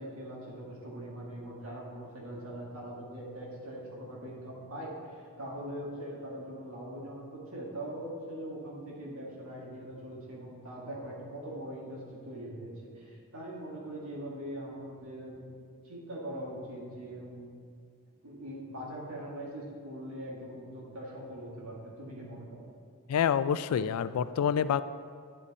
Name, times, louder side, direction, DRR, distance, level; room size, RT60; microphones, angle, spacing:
voice 1, 0.0-15.6 15.8-17.5 18.2-22.7, right 1 dB, 75° right, -3 dB, 1.8 m, -42 dB
voice 2, 23.1-24.8, left 8 dB, 85° left, 16 dB, 0.3 m, -27 dB
9.6 x 5.4 x 4.1 m, 2.1 s
head